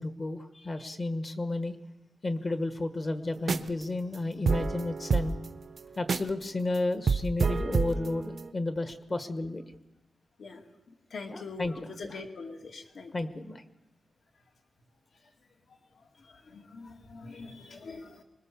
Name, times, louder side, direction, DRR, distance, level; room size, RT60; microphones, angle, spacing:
voice 1, 0.0-1.8 2.2-5.4 6.0-9.6 11.3-12.2 13.1-13.6, left 2 dB, 25° left, 8 dB, 1.3 m, -32 dB
sound 1, 3.4-3.8 4.1-4.2 4.5-6.4 6.8-6.9 7.1-8.5, right 5 dB, 45° right, 0.7 m, -28 dB
voice 2, 11.1-13.1 16.3-18.2, left 4 dB, 60° left, 2 dB, 2.4 m, -43 dB
25.5 x 21.0 x 7.0 m, 0.95 s
wide cardioid pair, 180°, 0 cm